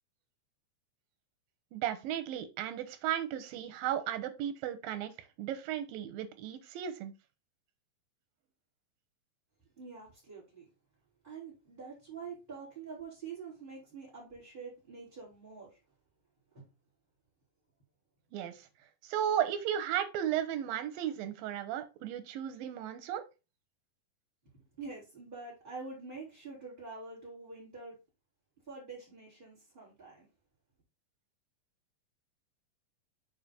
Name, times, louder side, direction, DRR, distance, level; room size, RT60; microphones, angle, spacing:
voice 1, 1.7-5.1 5.4-7.1 18.3-18.7 19.0-23.2, right 10 dB, 85° right, 2.6 m, -35 dB
voice 2, 9.8-10.7 11.2-15.8 16.5-16.7 24.8-28.0 28.7-30.3, right 4 dB, 15° right, 3.6 m, -46 dB
6.7 x 4.8 x 4.2 m
omnidirectional pair, 4.1 m